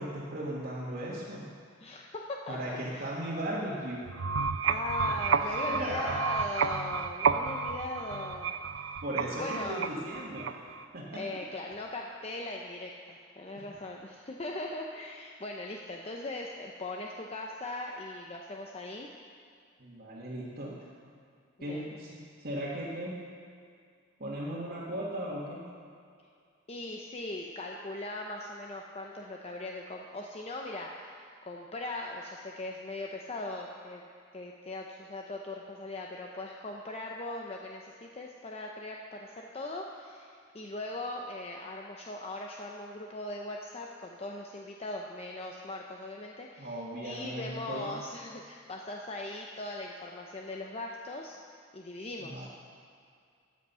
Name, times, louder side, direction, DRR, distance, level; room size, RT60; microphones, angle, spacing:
voice 1, 0.0-1.5 2.5-4.0 5.1-5.3 5.6-6.2 9.0-10.6 10.9-11.4 13.5-13.7 19.8-20.8 21.6-23.2 24.2-25.7 46.6-48.0 52.3-52.5, right 1 dB, 55° right, -8 dB, 1.8 m, -37 dB
voice 2, 1.8-2.6 2.9-3.1 4.6-9.0 9.4-9.9 11.1-19.1 21.6-21.9 26.7-34.0 34.3-51.4 51.7-52.5, left 2 dB, 35° left, 0 dB, 0.7 m, -40 dB
sound 1, 4.1-10.8, right 5 dB, 90° right, 0.5 m, -31 dB
14.0 x 8.2 x 5.6 m, 2.3 s
head